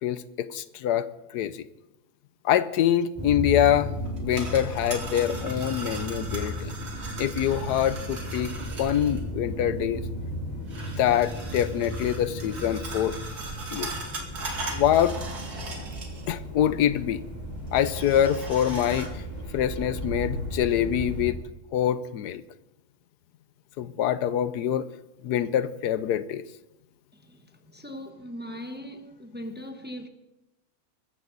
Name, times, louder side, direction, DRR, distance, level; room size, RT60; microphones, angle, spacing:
voice 1, 0.0-1.7 2.4-3.9 4.2-6.8 7.2-8.5 8.8-10.0 11.0-13.2 13.7-13.9 14.7-15.1 16.3-17.2 17.7-19.1 19.5-21.4 21.7-22.4 23.8-24.9 25.2-26.4, left 10 dB, 90° left, 1.3 m, -25 dB
sound 1, 3.1-21.3, equal, 10° left, 4.1 m, -35 dB
sound 2, 4.1-9.2 10.7-16.4 16.7-16.8 17.7-19.1, right 2 dB, 75° right, 2.9 m, -39 dB
voice 2, 27.2-30.1, equal, 5° right, 1.0 m, -40 dB
22.0 x 14.0 x 4.0 m
omnidirectional pair, 1.7 m